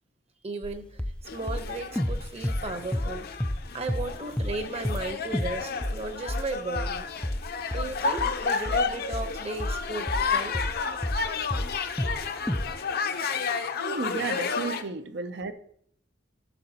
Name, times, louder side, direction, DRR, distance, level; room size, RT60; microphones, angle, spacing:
voice 1, 0.4-1.0 1.3-3.3 3.7-7.1 7.7-10.5 14.0-14.1, right 2 dB, 35° right, 7 dB, 0.9 m, -35 dB
sound 1, 0.6-0.7 1.0-1.2 1.5-3.6 3.9-4.1 4.4-4.6 4.8-5.1 5.3-5.6 5.8-11.3 11.5-12.2 12.5-12.7, left 1 dB, 5° left, 0.3 m, -30 dB
sound 2, 1.3-14.8, left 5 dB, 55° left, 0.7 m, -31 dB
voice 2, 13.8-15.5, right 4 dB, 65° right, 10 dB, 0.6 m, -33 dB
14.0 x 6.6 x 2.8 m, 0.64 s
head